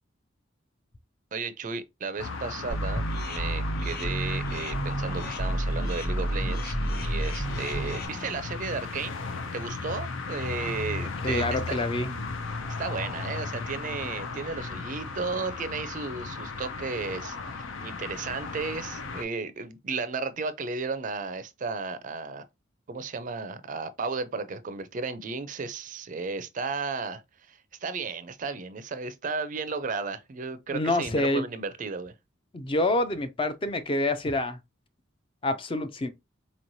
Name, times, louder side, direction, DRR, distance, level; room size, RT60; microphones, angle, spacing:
voice 1, 1.3-9.2 9.5-11.8 12.8-22.5 22.9-27.2 27.5-32.1, right 4 dB, 40° right, 0.4 m, -34 dB
sound 1, 2.2-19.2, left 4 dB, 90° left, 0.6 m, -36 dB
sound 2, 2.7-8.1, right 1 dB, 50° left, 0.8 m, -30 dB
voice 2, 11.2-12.1 30.7-31.4 32.5-34.6 35.4-36.1, left 1 dB, 25° left, 0.4 m, -27 dB
4.2 x 3.1 x 2.6 m
head